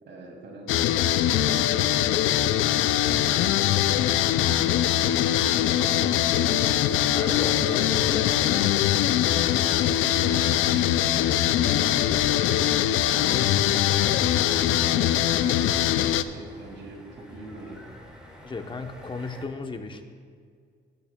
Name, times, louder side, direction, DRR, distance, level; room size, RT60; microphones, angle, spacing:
voice 1, 0.0-2.5 3.1-6.7 9.2-17.8, right 1 dB, 65° right, 1 dB, 2.4 m, -43 dB
sound 1, 0.7-16.2, left 12 dB, 90° left, 0.4 m, -22 dB
sound 2, 3.0-19.5, equal, 5° right, 2.8 m, -46 dB
voice 2, 5.8-6.1 7.1-8.4 18.4-20.1, left 3 dB, 25° left, 6 dB, 0.9 m, -35 dB
16.5 x 8.7 x 2.3 m, 2.1 s
cardioid pair, 90°, 20 cm